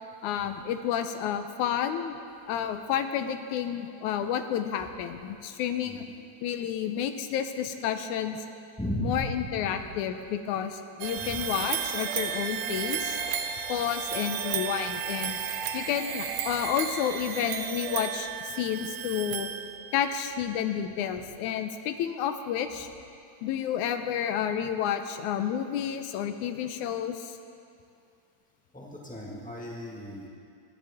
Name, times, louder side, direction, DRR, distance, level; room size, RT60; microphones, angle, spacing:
voice 1, 0.2-2.2 2.5-6.1 6.4-8.4 9.0-13.2 13.7-15.4 15.7-19.5 19.9-22.9 23.4-27.4, left 9 dB, 80° left, 8 dB, 2.1 m, -30 dB
voice 2, 8.8-9.8 11.2-11.4 28.7-30.3, equal, 5° left, -3 dB, 0.8 m, -36 dB
sound 1, 11.0-20.1, right 8 dB, 75° right, 1.9 m, -33 dB
24.0 x 10.0 x 3.6 m, 2.4 s
omnidirectional pair, 3.4 m